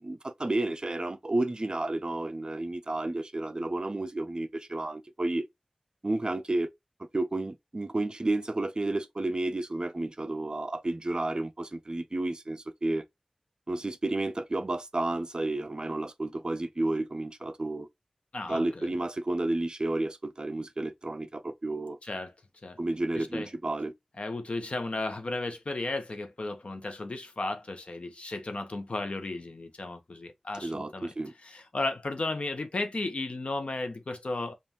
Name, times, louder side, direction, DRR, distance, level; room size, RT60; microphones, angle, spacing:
voice 1, 0.0-5.5 6.0-6.7 7.0-13.0 13.7-17.9 18.5-22.0 22.8-23.9 30.6-31.3, right 2 dB, 40° right, 0.5 m, -31 dB
voice 2, 18.3-18.9 22.0-22.3 22.6-22.8 23.2-23.5 24.2-31.1 31.4-34.5, left 2 dB, 70° left, 0.8 m, -34 dB
5.2 x 2.4 x 2.8 m
wide cardioid pair, 70°, 2 cm